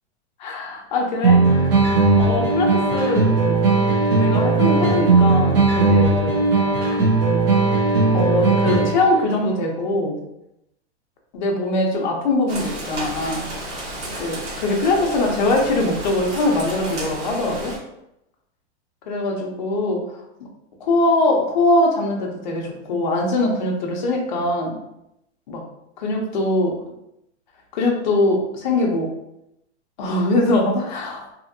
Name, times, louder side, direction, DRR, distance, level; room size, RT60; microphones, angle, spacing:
voice 1, 0.4-1.8 2.2-3.4 4.1-6.4 8.1-10.2 11.3-13.4 14.2-17.8 19.1-20.2 20.8-24.7 25.5-25.6 26.0-26.8 27.7-29.1 30.0-31.3, left 2 dB, 40° left, 0 dB, 0.6 m, -22 dB
sound 1, 1.2-9.2, right 3 dB, 50° right, 0.8 m, -17 dB
Rain, 12.5-17.8, right 1 dB, 85° right, 1.3 m, -32 dB
2.7 x 2.5 x 2.5 m, 0.83 s
supercardioid pair, 175°, 35 cm